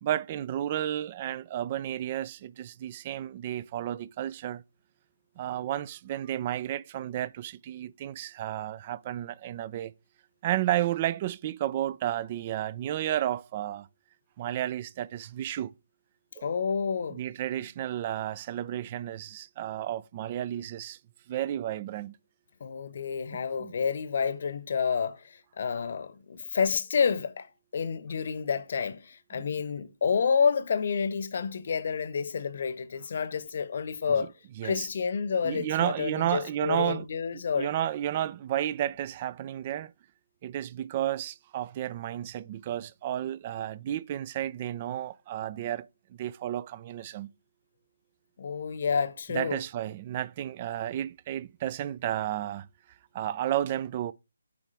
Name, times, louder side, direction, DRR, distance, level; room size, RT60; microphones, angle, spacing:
voice 1, 0.0-4.6 5.4-9.9 10.4-13.9 14.4-15.7 16.4-16.6 17.1-21.0 21.3-22.2 23.6-23.7 29.3-29.5 34.2-34.3 34.6-34.9 35.4-37.1 37.3-39.9 40.4-45.9 46.2-47.3 49.3-52.7 53.1-54.1, right 12 dB, 30° right, 0.3 m, -32 dB
voice 2, 16.4-17.2 22.6-34.3 34.6-37.7 48.4-49.6, left 6 dB, 45° left, 0.8 m, -29 dB
8.4 x 4.8 x 3.4 m
figure-of-eight pair, 145°, 0 cm